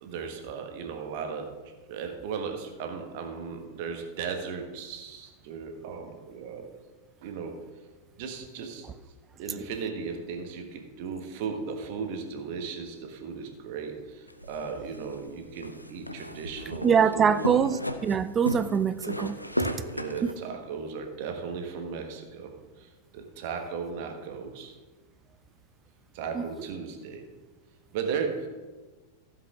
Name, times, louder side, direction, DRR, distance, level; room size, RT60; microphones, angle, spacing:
voice 1, 0.0-1.6 1.9-6.8 7.2-7.6 8.2-8.9 9.4-17.6 19.9-24.8 26.1-27.3 27.9-28.5, right 5 dB, 50° right, 1.4 m, -36 dB
sound 1, 14.3-20.3, equal, 90° left, 0.6 m, -35 dB
voice 2, 16.8-19.7 26.3-26.4, right 7 dB, 25° right, 0.5 m, -24 dB
14.5 x 7.5 x 3.7 m
figure-of-eight pair, 90°, 0 cm